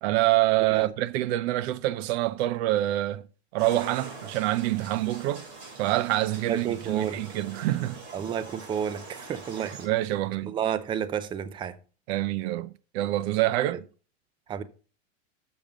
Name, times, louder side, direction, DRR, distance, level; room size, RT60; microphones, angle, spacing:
voice 1, 0.0-3.2 3.5-5.4 5.8-8.0 9.6-10.5 12.1-13.8, right 16 dB, 55° right, 0.7 m, -26 dB
sound 1, 3.6-9.9, right 3 dB, 40° right, 3.7 m, -44 dB
voice 2, 6.5-7.2 8.1-9.9 10.4-11.8 13.7-13.8 14.5-14.6, right 8 dB, 15° right, 0.4 m, -31 dB
7.1 x 5.1 x 6.1 m
hypercardioid pair, 125°, 38 cm